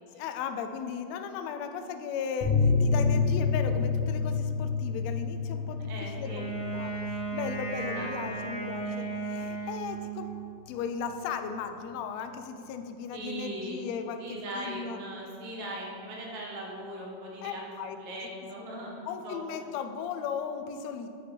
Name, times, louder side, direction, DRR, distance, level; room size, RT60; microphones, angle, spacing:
voice 1, 0.1-10.3 10.7-15.0 17.4-18.0 19.0-21.1, left 6 dB, 90° left, 7 dB, 1.5 m, -36 dB
sound 1, 2.4-9.5 9.8-9.9 10.2-10.3, left 4 dB, 60° left, 1.9 m, -29 dB
voice 2, 5.6-6.5 7.9-8.4 8.8-9.1 9.4-9.7 13.1-13.8 14.2-17.6 17.9-19.4, right 1 dB, 60° right, -2 dB, 1.8 m, -40 dB
Wind instrument woodwind instrument, 6.2-10.5, right 4 dB, 45° left, 1.6 m, -35 dB
8.3 x 5.1 x 4.3 m, 2.7 s
omnidirectional pair, 3.6 m